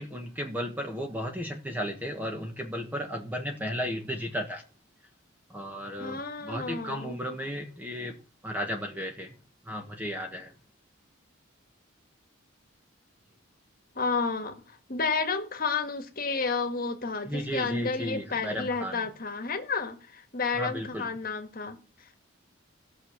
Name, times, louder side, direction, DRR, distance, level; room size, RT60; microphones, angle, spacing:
voice 1, 0.0-4.6 5.5-8.2 8.4-9.3 9.6-10.5 17.2-19.0 20.6-21.1, equal, 10° right, 1.3 m, -34 dB
voice 2, 6.0-7.2 14.0-14.6 14.9-21.8, left 4 dB, 45° left, 1.6 m, -31 dB
15.0 x 6.4 x 7.2 m
head